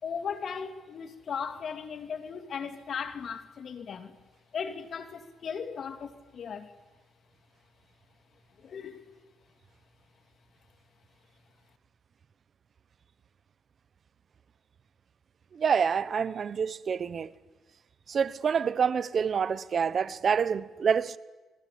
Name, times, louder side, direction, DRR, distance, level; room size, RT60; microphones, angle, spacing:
voice 1, 0.0-4.1 4.5-6.7 8.6-9.1, left 6 dB, 55° left, 2.7 m, -37 dB
voice 2, 15.5-17.3 18.1-21.2, right 6 dB, 50° right, 1.0 m, -27 dB
28.5 x 21.5 x 8.6 m
cardioid pair, 90°, 0 cm